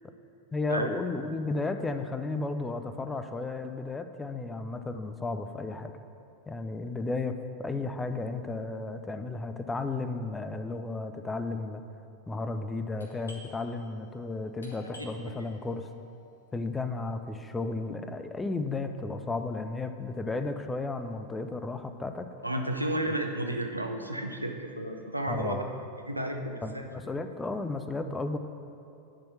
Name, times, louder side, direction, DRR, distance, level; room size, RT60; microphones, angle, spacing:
voice 1, 0.5-6.0 6.5-11.8 12.3-15.9 16.5-22.3 25.3-25.8 26.6-28.4, left 3 dB, 10° left, 8 dB, 0.5 m, -33 dB
Doorbell, 13.0-18.4, left 1 dB, 75° left, 1.5 m, -53 dB
voice 2, 22.4-25.6 26.1-26.9, right 1 dB, 85° right, 4 dB, 0.7 m, -32 dB
10.5 x 4.4 x 7.1 m, 2.8 s
figure-of-eight pair, 90°, 0 cm